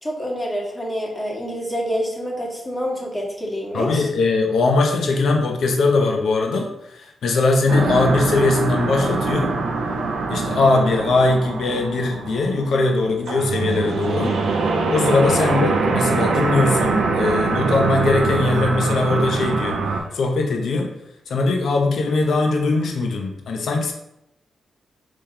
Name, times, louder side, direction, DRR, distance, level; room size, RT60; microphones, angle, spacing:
voice 1, 0.0-4.0 15.5-15.6, equal, 25° left, -2 dB, 1.8 m, -27 dB
voice 2, 3.7-9.5 10.3-14.4 14.9-19.8 20.1-20.9 21.3-23.9, left 3 dB, 70° left, 2 dB, 0.8 m, -20 dB
sound 1, 7.7-20.0, right 3 dB, 80° right, 0.7 m, -23 dB
4.9 x 3.8 x 2.8 m, 0.82 s
supercardioid pair, 50°, 0 cm